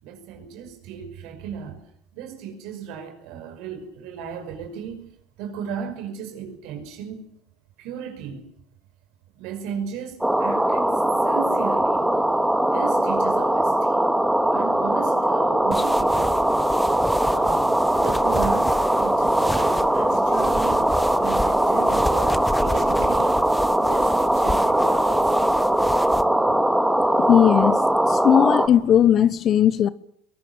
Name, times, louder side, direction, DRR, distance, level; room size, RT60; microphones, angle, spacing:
voice 1, 0.0-1.8 2.1-5.1 5.4-7.2 7.8-8.5 9.3-12.1 12.4-14.1 14.5-16.8 17.3-23.4 23.8-25.3, right 7 dB, 70° right, 5.8 m, -35 dB
sound 1, 10.2-28.7, right 1 dB, 5° right, 2.4 m, -21 dB
sound 2, 15.7-26.2, left 2 dB, 10° left, 1.4 m, -34 dB
voice 2, 27.2-27.8 28.1-29.9, left 9 dB, 50° left, 1.1 m, -17 dB
23.0 x 20.0 x 9.0 m
hypercardioid pair, 75°, 0 cm